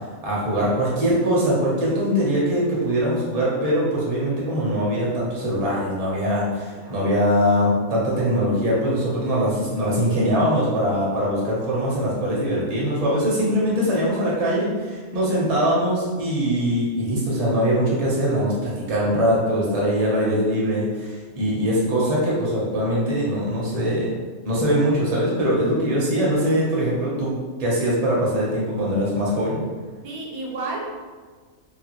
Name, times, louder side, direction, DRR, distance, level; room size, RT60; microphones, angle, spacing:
voice 1, 0.2-24.1 24.4-27.3 27.6-29.6, equal, 35° right, -6 dB, 0.7 m, -22 dB
voice 2, 6.7-7.0 30.0-30.8, right 3 dB, 85° right, -3 dB, 1.1 m, -32 dB
2.9 x 2.3 x 2.9 m, 1.5 s
omnidirectional pair, 1.5 m